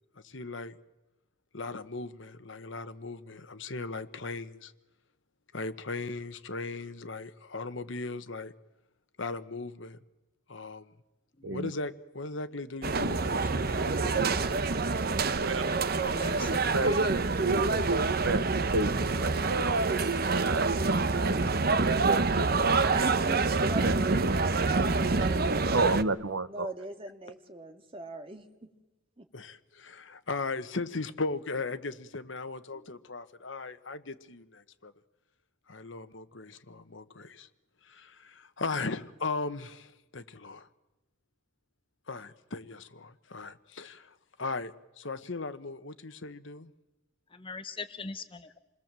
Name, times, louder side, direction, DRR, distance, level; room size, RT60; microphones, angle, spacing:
voice 1, 0.2-0.7 1.5-4.7 5.5-8.5 9.2-10.0 10.5-10.8 11.5-14.4 15.1-15.2 29.3-34.9 35.7-37.5 37.9-40.7 42.1-44.7 45.0-46.7, left 3 dB, 70° left, 10 dB, 1.2 m, -38 dB
voice 2, 11.4-11.7 15.7-17.1 17.9-18.0 21.4-21.5 32.7-32.9 47.3-48.6, left 3 dB, 25° left, 10 dB, 1.0 m, -43 dB
sound 1, 12.8-26.0, right 3 dB, 50° right, 0.9 m, -27 dB
voice 3, 15.3-15.6 16.3-16.9 17.2-18.4 18.7-19.8 20.3-21.4 21.7-23.0 23.5-24.0 24.8-24.9 25.7-26.7, right 3 dB, 85° right, 14 dB, 1.1 m, -32 dB
voice 4, 22.9-23.4 23.7-23.8 26.5-28.7 29.2-29.3, right 2 dB, 30° right, 6 dB, 2.1 m, -40 dB
28.0 x 20.5 x 7.6 m, 1.1 s
head